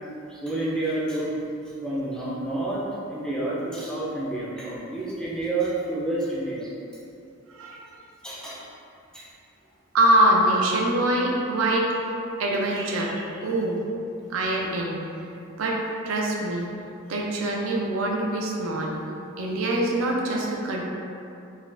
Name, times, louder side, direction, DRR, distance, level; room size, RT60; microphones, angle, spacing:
voice 1, 0.3-1.4 1.8-2.8 3.1-6.7 8.2-8.6 9.1-9.3, right 2 dB, 5° left, -7 dB, 0.5 m, -29 dB
voice 2, 7.5-7.9 9.9-11.9 12.4-13.8 14.3-15.0 15.6-15.8 16.0-16.7 17.1-19.0 19.4-20.8, right 1 dB, 85° right, -2 dB, 0.5 m, -24 dB
3.9 x 2.5 x 2.3 m, 2.7 s
head